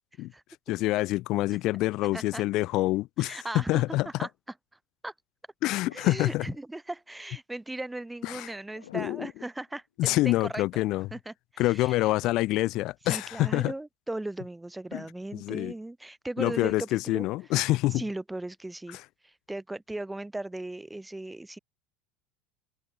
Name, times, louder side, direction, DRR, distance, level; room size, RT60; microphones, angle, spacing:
voice 1, 0.7-4.1 5.6-6.5 8.2-8.5 8.9-9.3 10.0-11.1 11.6-13.7 14.9-15.0 15.4-15.7 16.4-18.0, left 18 dB, 50° left, 0.3 m, -26 dB
voice 2, 2.1-2.4 3.2-4.3 5.0-5.1 5.9-10.7 11.1-12.1 13.1-17.3 17.9-19.0 19.2-21.6, right 2 dB, 10° right, 1.2 m, -37 dB
sound 1, 5.8-6.6 8.7-9.8 10.5-10.6, left 11 dB, 75° left, 3.1 m, -51 dB
open air
figure-of-eight pair, 70°, 0 cm